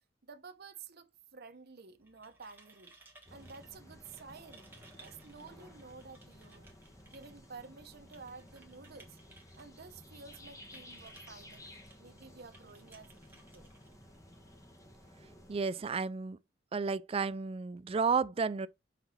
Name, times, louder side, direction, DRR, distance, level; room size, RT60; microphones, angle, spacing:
voice 1, 0.2-2.9 3.3-4.7 5.0-6.7 7.1-9.2 9.5-13.7, right 4 dB, 55° right, 0.8 m, -52 dB
sound 1, 1.9-14.6, right 2 dB, 10° right, 1.5 m, -61 dB
sound 2, 3.2-15.6, left 1 dB, 15° left, 1.3 m, -55 dB
voice 2, 15.5-16.4 16.7-18.7, right 5 dB, 30° right, 0.3 m, -32 dB
5.9 x 4.0 x 4.1 m
head